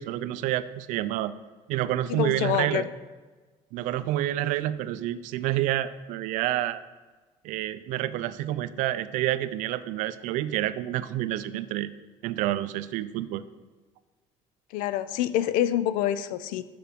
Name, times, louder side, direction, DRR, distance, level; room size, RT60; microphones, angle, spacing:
voice 1, 0.0-1.3 1.7-2.8 3.7-6.8 7.4-11.9 12.2-13.4, right 13 dB, 75° right, 14 dB, 0.4 m, -28 dB
voice 2, 2.1-2.9 14.7-16.6, left 12 dB, 85° left, 14 dB, 0.4 m, -26 dB
6.9 x 5.9 x 5.1 m, 1.3 s
cardioid pair, 165°, 13 cm